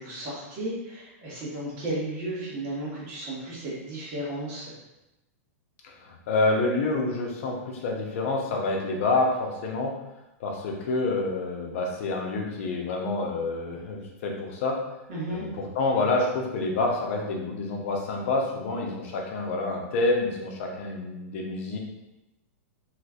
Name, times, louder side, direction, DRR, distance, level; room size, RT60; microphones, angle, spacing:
voice 1, 0.0-4.7 15.1-15.4, right 1 dB, 40° right, -6 dB, 1.5 m, -34 dB
voice 2, 5.8-9.9 10.4-14.8 15.3-21.8, left 2 dB, 60° left, 0 dB, 0.7 m, -28 dB
3.1 x 3.1 x 2.4 m, 0.96 s
supercardioid pair, 150°, 8 cm